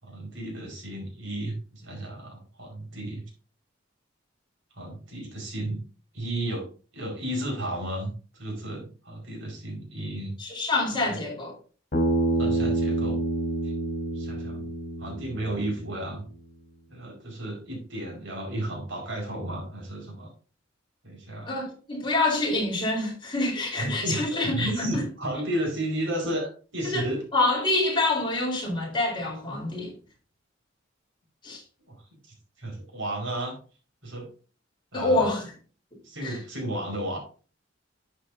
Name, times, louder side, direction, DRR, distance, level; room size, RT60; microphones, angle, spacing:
voice 1, 0.0-3.2 4.7-5.8 6.1-6.7 6.9-10.4 11.0-11.2 12.4-13.2 13.6-13.7 14.1-14.7 15.0-16.3 16.9-20.3 21.0-21.5 23.8-27.2 31.9-32.0 32.6-33.5 34.0-34.3 34.9-35.2 36.0-37.2, right 1 dB, 75° right, 5.2 m, -33 dB
voice 2, 10.4-11.5 21.5-25.0 26.8-27.1 27.3-29.9 31.4-31.6 34.9-35.5 36.2-36.4, left 2 dB, 25° left, 4.3 m, -26 dB
Bass guitar, 11.9-16.2, right 2 dB, 50° left, 3.9 m, -28 dB
11.0 x 7.8 x 2.8 m
head